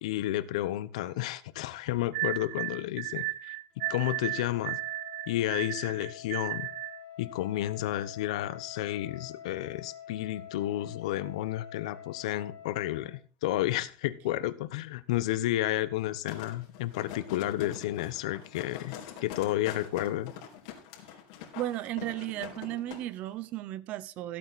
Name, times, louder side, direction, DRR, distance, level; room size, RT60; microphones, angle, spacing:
voice 1, 0.0-4.8 5.3-6.7 7.2-20.3, left 14 dB, 85° left, 1.0 m, -31 dB
sound 1, 2.1-7.0, right 21 dB, 75° right, 0.6 m, -35 dB
Wind instrument woodwind instrument, 3.8-13.1, left 9 dB, 45° left, 3.0 m, -47 dB
sound 2, 16.3-23.0 23.4-23.5, left 9 dB, 70° left, 3.7 m, -44 dB
voice 2, 21.5-24.4, right 14 dB, 45° right, 0.8 m, -35 dB
14.5 x 8.6 x 4.2 m
supercardioid pair, 155°, 3 cm